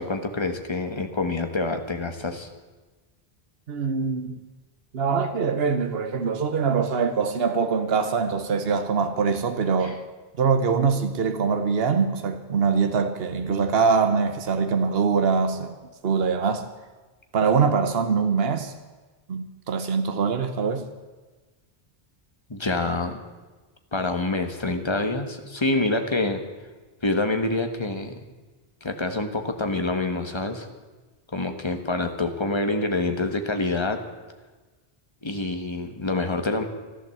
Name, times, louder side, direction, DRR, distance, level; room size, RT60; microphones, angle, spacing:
voice 1, 0.0-2.5 9.8-9.9 22.5-23.2 23.9-26.4 27.0-28.1 28.8-30.7 31.3-34.0 35.2-36.6, left 2 dB, 25° left, 6 dB, 1.5 m, -26 dB
voice 2, 3.7-4.4 4.9-10.0 10.4-15.8 16.0-16.6 17.3-18.7 19.3-20.9, right 5 dB, 75° right, 8 dB, 1.2 m, -23 dB
14.5 x 12.0 x 7.8 m, 1.3 s
omnidirectional pair, 1.0 m